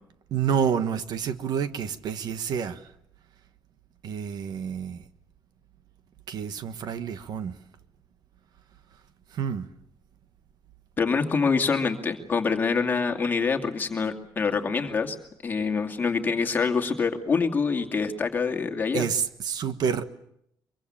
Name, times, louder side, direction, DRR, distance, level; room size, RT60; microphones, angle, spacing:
voice 1, 0.3-2.9 4.0-5.0 6.3-7.6 9.3-9.7 18.9-20.1, right 7 dB, 55° right, 1.3 m, -28 dB
voice 2, 11.0-15.2 15.4-19.1, left 5 dB, 25° left, 2.4 m, -25 dB
24.5 x 23.0 x 8.8 m
cardioid pair, 170°, 8 cm